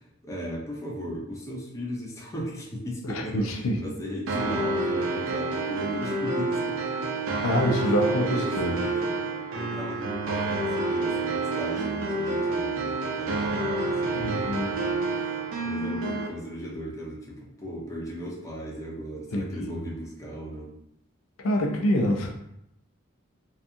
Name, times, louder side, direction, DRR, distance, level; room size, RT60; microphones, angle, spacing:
voice 1, 0.0-6.8 7.8-7.9 8.2-9.2 9.5-20.8, equal, 15° left, -3 dB, 0.5 m, -37 dB
voice 2, 3.1-3.8 7.4-8.8 14.1-14.7 19.3-19.7 21.4-22.3, equal, 85° left, 1 dB, 0.5 m, -26 dB
sound 1, 4.3-16.3, right 3 dB, 80° right, 0.5 m, -28 dB
2.6 x 2.3 x 2.5 m, 0.78 s
head